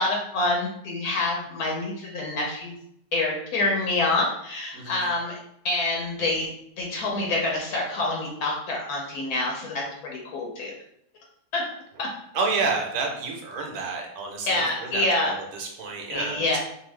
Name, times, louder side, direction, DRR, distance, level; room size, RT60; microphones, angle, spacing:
voice 1, 0.0-2.8 3.1-5.4 5.6-6.5 6.8-10.7 11.5-11.6 12.0-12.1 14.5-15.3 16.1-16.6, left 2 dB, 75° left, -1 dB, 1.1 m, -26 dB
voice 2, 12.3-16.6, right 4 dB, 75° right, 1 dB, 1.2 m, -30 dB
2.7 x 2.5 x 3.2 m, 0.75 s
omnidirectional pair, 1.6 m